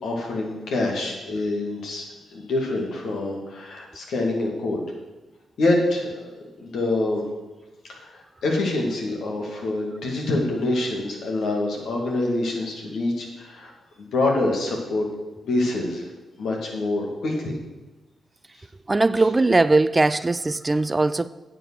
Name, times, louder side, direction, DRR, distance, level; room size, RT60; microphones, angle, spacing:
voice 1, 0.0-4.8 5.6-6.1 6.6-7.2 7.9-13.7 14.0-15.1 15.4-16.1 16.4-17.5, left 2 dB, 70° left, 2.5 m, -26 dB
voice 2, 18.9-21.3, right 2 dB, 30° right, 0.4 m, -20 dB
9.1 x 7.4 x 6.4 m
hypercardioid pair, 40°, 0 cm